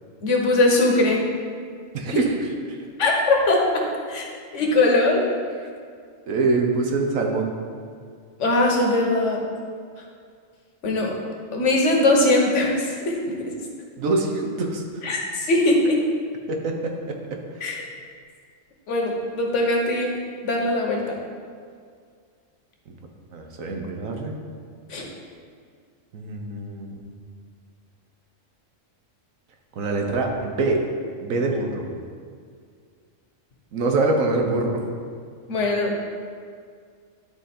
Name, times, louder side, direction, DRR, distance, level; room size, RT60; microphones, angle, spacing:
voice 1, 0.2-1.2 3.0-3.6 4.1-4.3 4.5-5.2 8.4-9.4 10.8-11.1 11.5-13.5 15.0-16.0 17.6-17.7 18.9-20.2 20.4-21.2 24.9-25.0 35.5-35.9, left 2 dB, 65° left, 0 dB, 1.4 m, -21 dB
voice 2, 1.9-2.8 6.3-7.5 14.0-14.8 16.5-17.4 22.9-23.0 23.3-24.4 26.1-27.1 29.8-30.8 31.2-31.8 33.7-34.8, right 3 dB, 85° right, 2 dB, 1.3 m, -24 dB
10.5 x 3.8 x 4.3 m, 2.1 s
omnidirectional pair, 1.4 m